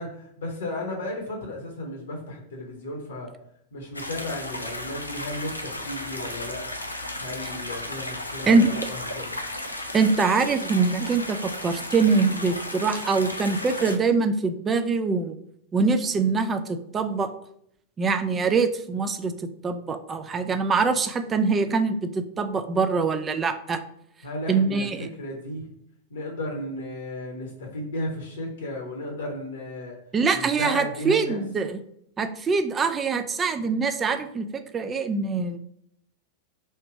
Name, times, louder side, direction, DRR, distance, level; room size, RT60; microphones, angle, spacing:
voice 1, 0.0-3.3 3.7-6.6 7.2-9.4 24.2-25.7 26.1-30.0 30.3-31.4, left 1 dB, 65° left, 1 dB, 0.9 m, -34 dB
sound 1, 3.9-14.0, left 1 dB, 85° left, 0.5 m, -34 dB
voice 2, 9.9-15.3 15.7-17.3 18.0-23.8 24.5-25.1 30.1-31.8 32.2-35.6, right 4 dB, 20° right, 9 dB, 0.4 m, -24 dB
3.2 x 2.9 x 4.6 m, 0.72 s
figure-of-eight pair, 90°, 0 cm